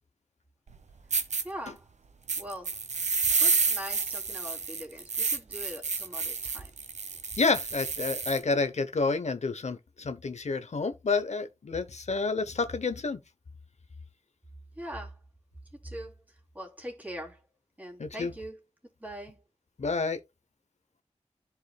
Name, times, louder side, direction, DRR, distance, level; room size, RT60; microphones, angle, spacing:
sound 1, 0.7-0.8 1.1-1.4 2.3-8.4, right 4 dB, 85° right, 1.1 m, -29 dB
voice 1, 1.4-1.9 2.4-2.8 3.1-6.7 14.7-15.2 15.8-17.4 17.8-18.6 19.0-19.4, equal, 15° right, 3.1 m, -42 dB
voice 2, 7.3-13.2 18.0-18.3 19.8-20.2, left 4 dB, 70° left, 0.9 m, -29 dB
13.5 x 4.9 x 2.3 m
wide cardioid pair, 60°, 12 cm